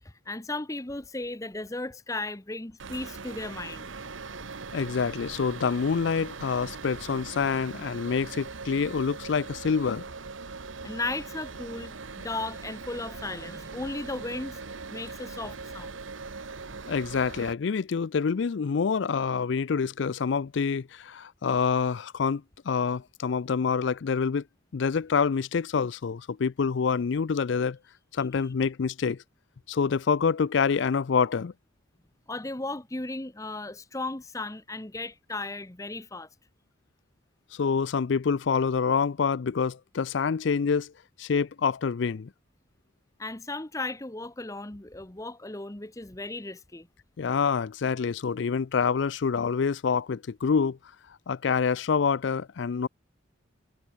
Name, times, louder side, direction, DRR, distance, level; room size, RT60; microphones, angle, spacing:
voice 1, 0.0-3.9 10.8-14.6 14.9-16.0 32.3-36.3 43.2-46.9, left 2 dB, 15° left, 0.9 m, -36 dB
sound 1, 2.8-17.5, right 4 dB, 80° right, 1.2 m, -41 dB
voice 2, 4.7-10.1 16.9-24.4 24.7-27.8 28.1-29.2 29.7-31.5 37.5-40.9 41.2-42.3 47.2-50.8 51.3-52.9, left 5 dB, 65° left, 0.4 m, -26 dB
head